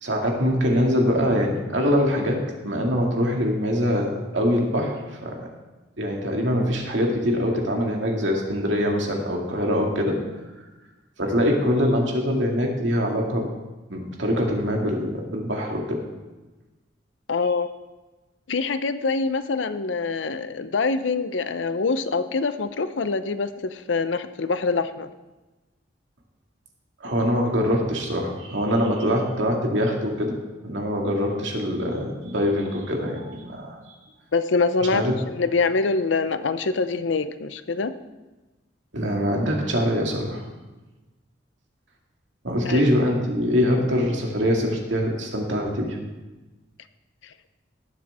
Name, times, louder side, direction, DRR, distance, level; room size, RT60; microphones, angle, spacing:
voice 1, 0.0-5.5 6.0-10.2 11.2-13.5 13.9-16.0 27.0-33.8 34.9-35.1 38.9-40.4 42.4-46.0, equal, 80° right, 0 dB, 2.2 m, -23 dB
voice 2, 17.3-17.7 18.5-25.1 34.3-37.9 42.6-42.9, left 4 dB, 80° left, 11 dB, 0.6 m, -25 dB
19.0 x 7.6 x 3.5 m, 1.1 s
head